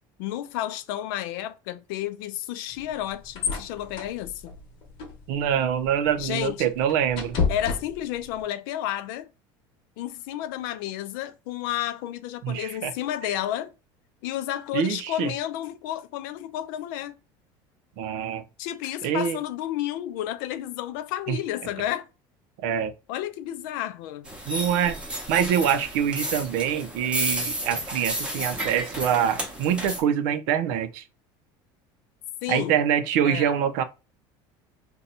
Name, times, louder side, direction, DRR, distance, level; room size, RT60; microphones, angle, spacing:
voice 1, 0.2-4.5 6.2-6.7 7.5-9.3 10.0-13.7 14.2-17.2 18.6-22.1 23.1-24.3 32.4-32.7 33.2-33.5, left 12 dB, 85° left, 0.4 m, -31 dB
sound 1, 2.7-8.4, left 5 dB, 50° left, 1.0 m, -33 dB
voice 2, 5.3-7.4 12.4-12.9 14.7-15.3 18.0-18.4 19.0-19.4 21.3-21.4 22.6-22.9 24.5-25.0 25.3-31.0 32.5-33.8, right 9 dB, 75° right, 0.5 m, -25 dB
sound 2, 24.3-30.0, right 1 dB, 10° right, 0.7 m, -32 dB
2.7 x 2.2 x 4.1 m
cardioid pair, 160°, 11 cm